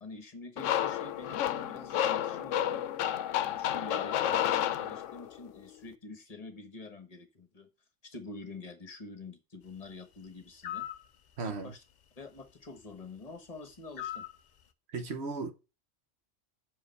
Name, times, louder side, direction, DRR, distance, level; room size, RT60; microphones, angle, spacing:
voice 1, 0.0-2.8 3.4-7.7 8.0-10.9 11.4-11.8 12.2-14.3, left 3 dB, 30° left, 1.2 m, -47 dB
sound 1, 0.6-5.4, left 11 dB, 75° left, 0.9 m, -31 dB
sound 2, 10.6-11.0 14.0-14.4, left 11 dB, 50° left, 0.5 m, -38 dB
voice 2, 11.4-11.7 14.9-15.5, right 4 dB, 55° right, 1.3 m, -35 dB
6.2 x 4.9 x 6.4 m
omnidirectional pair, 1.3 m